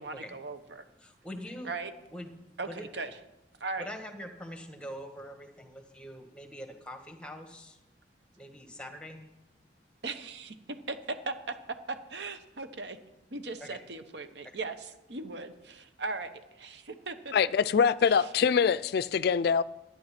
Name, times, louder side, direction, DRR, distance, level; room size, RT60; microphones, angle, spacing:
voice 1, 0.0-0.8 1.6-1.9 2.6-3.2 3.6-3.9 10.0-10.5 10.9-11.3 11.9-13.0 13.3-17.3 18.1-18.3, right 3 dB, 70° right, 1.0 m, -38 dB
voice 2, 1.0-1.7 2.1-2.4 2.7-2.8 3.8-7.8 8.4-9.3 13.6-13.8, equal, 5° left, 1.4 m, -43 dB
voice 3, 17.3-19.6, left 6 dB, 60° left, 0.3 m, -24 dB
11.5 x 10.0 x 5.9 m
head